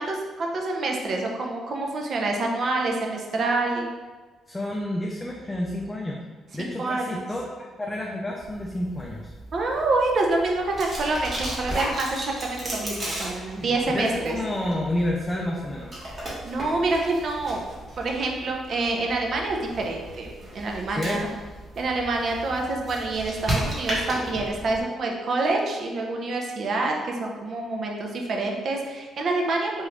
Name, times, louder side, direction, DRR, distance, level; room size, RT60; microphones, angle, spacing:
voice 1, 0.0-3.9 6.6-7.3 9.5-14.4 16.4-17.6 18.0-20.3 20.5-21.3 21.8-29.9, right 2 dB, 55° right, 1 dB, 0.5 m, -27 dB
voice 2, 4.5-6.2 6.5-9.2 13.6-15.9 20.9-21.2, left 1 dB, 15° left, -2 dB, 0.4 m, -30 dB
sound 1, 8.4-24.8, right 1 dB, 35° right, 1.0 m, -35 dB
3.0 x 2.4 x 3.2 m, 1.3 s
cardioid pair, 90°, 0 cm